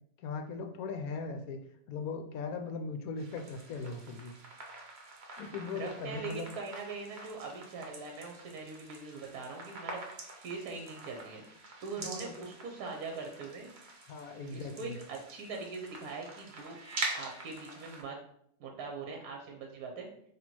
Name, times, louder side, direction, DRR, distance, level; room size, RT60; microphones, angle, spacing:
voice 1, 0.2-1.6 1.9-4.3 5.4-6.5 12.0-12.3 14.1-15.0, left 4 dB, 70° left, 6 dB, 0.9 m, -39 dB
sound 1, 3.2-18.0, right 2 dB, 45° right, 1.0 m, -45 dB
voice 2, 5.7-10.0 10.4-11.4 11.8-13.7 14.5-16.8 17.2-18.2 18.6-20.1, right 4 dB, 70° right, 1 dB, 1.2 m, -42 dB
4.2 x 2.8 x 4.5 m, 0.69 s
omnidirectional pair, 1.7 m